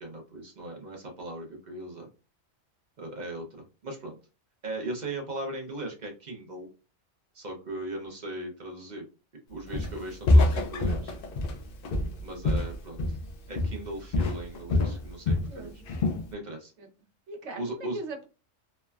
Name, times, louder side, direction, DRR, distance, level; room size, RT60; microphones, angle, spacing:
voice 1, 0.0-2.1 3.0-4.2 4.6-6.7 7.3-9.0 9.5-11.2 12.2-13.2 13.5-15.7 16.3-16.7 17.6-18.0, right 1 dB, 50° right, 1 dB, 0.5 m, -38 dB
Walk footsteps, 9.7-10.0 10.3-13.3 13.6-13.9 14.1-15.5 15.9-16.3, left 2 dB, 60° left, 0.6 m, -25 dB
voice 2, 15.5-15.9 16.8-16.9 17.3-18.3, right 2 dB, 65° right, 4 dB, 0.9 m, -40 dB
3.1 x 2.1 x 2.2 m, 0.32 s
omnidirectional pair, 1.3 m